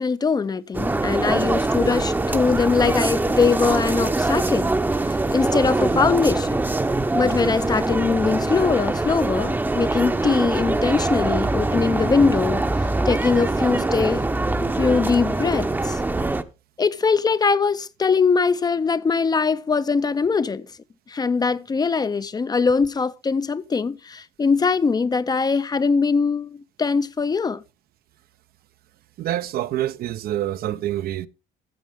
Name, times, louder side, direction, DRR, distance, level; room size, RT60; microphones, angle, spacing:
voice 1, 0.0-4.7 5.0-6.6 7.1-14.3 14.8-16.0 16.8-20.7 21.1-27.6, left 5 dB, 25° left, 0.5 m, -22 dB
sound 1, 0.7-16.4, right 2 dB, 10° right, 0.7 m, -23 dB
voice 2, 29.2-31.3, right 13 dB, 65° right, 0.6 m, -26 dB
14.5 x 7.3 x 3.5 m
cardioid pair, 110°, 17 cm